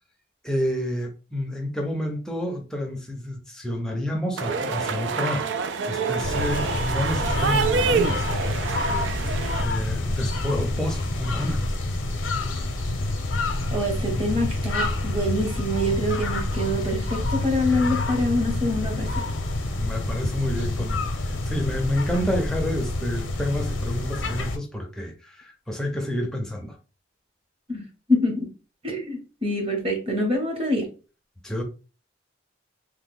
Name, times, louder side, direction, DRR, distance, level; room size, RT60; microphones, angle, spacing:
voice 1, 0.4-5.5 5.9-11.6 19.8-26.8 31.4-31.6, equal, 5° left, 0.5 m, -29 dB
sound 1, 4.4-9.6, right 5 dB, 65° right, 0.3 m, -26 dB
sound 2, 6.2-24.6, left 2 dB, 75° left, 0.6 m, -28 dB
voice 2, 13.7-19.1 27.7-27.8 28.1-28.5 28.8-30.9, left 1 dB, 30° right, 0.9 m, -25 dB
2.9 x 2.2 x 3.6 m
head